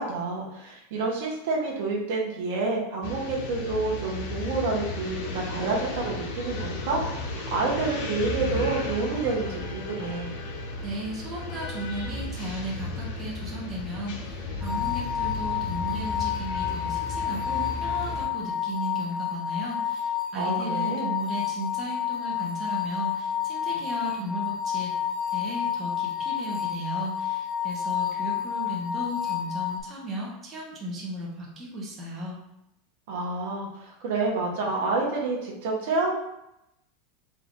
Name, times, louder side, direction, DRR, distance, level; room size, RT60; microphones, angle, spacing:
voice 1, 0.0-10.3 20.3-21.1 33.1-36.1, right 3 dB, 70° right, -2 dB, 0.9 m, -28 dB
sound 1, 3.0-18.3, left 2 dB, 60° left, 0.6 m, -34 dB
voice 2, 10.8-24.9 25.3-32.4, right 1 dB, 20° right, -4 dB, 0.9 m, -35 dB
sound 2, 14.6-29.8, left 9 dB, 20° left, 0.4 m, -30 dB
3.7 x 2.5 x 3.5 m, 0.85 s
supercardioid pair, 155°, 0 cm